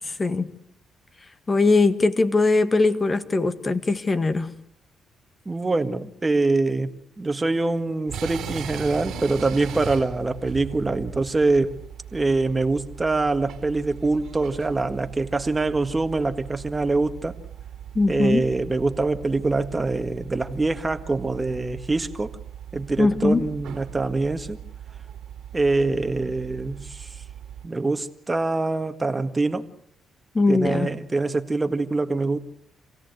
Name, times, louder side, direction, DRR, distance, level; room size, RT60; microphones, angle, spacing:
voice 1, 0.0-0.5 1.5-4.5 18.0-18.5 23.0-23.4 30.3-30.9, left 3 dB, 30° left, 10 dB, 1.8 m, -21 dB
voice 2, 5.5-11.8 12.1-17.4 18.1-22.3 22.7-24.6 25.5-27.2 27.6-29.7 30.5-32.4, right 3 dB, 20° right, 8 dB, 1.8 m, -24 dB
sound 1, 8.1-27.7, right 8 dB, 75° right, 3.0 m, -39 dB
27.0 x 17.0 x 8.1 m, 0.71 s
cardioid pair, 90°, 0 cm